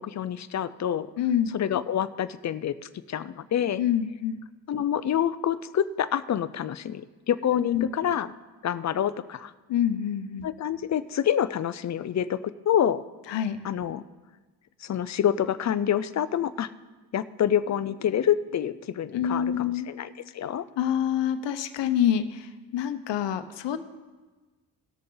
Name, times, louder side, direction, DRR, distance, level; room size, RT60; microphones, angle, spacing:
voice 1, 0.0-1.1 1.5-2.7 3.1-3.8 4.7-8.3 8.6-9.5 10.4-12.4 12.7-13.0 13.6-14.0 14.8-16.7 17.1-20.7, left 9 dB, 40° left, 15 dB, 0.5 m, -27 dB
voice 2, 1.2-1.5 3.8-4.4 7.5-7.9 9.7-10.5 13.3-13.6 19.1-19.9 20.8-23.8, left 9 dB, 75° left, 10 dB, 0.9 m, -26 dB
18.5 x 6.7 x 3.9 m, 1.3 s
cardioid pair, 80°, 43 cm